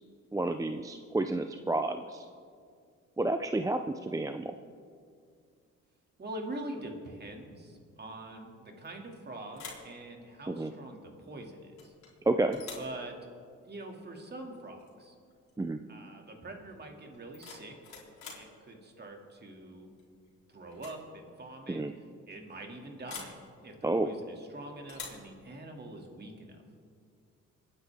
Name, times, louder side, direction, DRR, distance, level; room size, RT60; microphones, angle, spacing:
voice 1, 0.3-2.2 3.2-4.5 10.5-10.7 12.3-12.6 15.6-15.8 21.7-21.9 23.8-24.1, right 2 dB, 10° right, 7 dB, 0.5 m, -30 dB
voice 2, 6.2-11.9 12.8-13.2 13.6-15.1 15.9-17.8 18.3-19.9 20.5-21.8 22.3-23.4 23.6-26.6, right 1 dB, 35° right, 2 dB, 2.5 m, -44 dB
sound 1, 8.8-9.2 9.5-9.9 11.8-12.1 12.5-12.9 14.8-15.0 15.3-15.7 17.1-18.5 20.0-20.3 20.7-21.0 21.3-21.4 23.1-23.4 24.9-25.3, left 5 dB, 65° left, 3.5 m, -46 dB
25.5 x 9.9 x 3.6 m, 2.2 s
cardioid pair, 90°, 30 cm